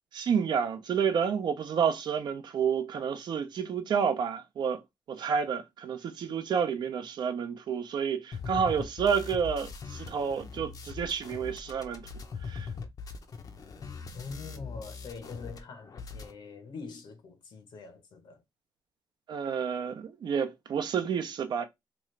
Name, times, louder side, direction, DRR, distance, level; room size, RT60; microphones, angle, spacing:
voice 1, 0.1-4.8 5.1-12.1 12.4-12.7 19.3-21.7, right 7 dB, 70° right, 0.6 m, -30 dB
sound 1, 8.3-15.6 15.8-16.3, left 5 dB, 50° left, 0.6 m, -41 dB
voice 2, 14.1-18.4, left 4 dB, 75° left, 0.9 m, -44 dB
3.0 x 2.4 x 3.1 m
cardioid pair, 115°, 8 cm